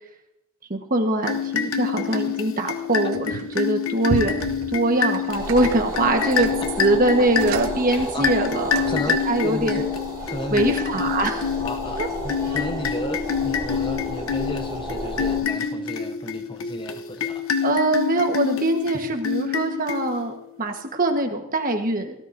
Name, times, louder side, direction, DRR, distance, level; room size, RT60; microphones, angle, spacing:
voice 1, 0.7-3.2 3.5-6.5 6.8-9.9 10.5-11.5 12.0-12.1 17.6-22.1, right 2 dB, 40° right, 4 dB, 1.4 m, -23 dB
sound 1, 1.2-20.4, left 6 dB, 75° left, 0.9 m, -27 dB
sound 2, 3.1-3.6 4.1-9.2, right 5 dB, 80° right, 0.5 m, -35 dB
sound 3, 5.3-15.4, right 1 dB, 15° right, 4.8 m, -33 dB
voice 2, 6.9-7.3 7.9-8.3 8.9-9.2 9.4-9.9 10.3-10.7 11.6-17.7, left 2 dB, 25° left, 6 dB, 0.6 m, -33 dB
17.5 x 12.5 x 2.7 m, 0.81 s
head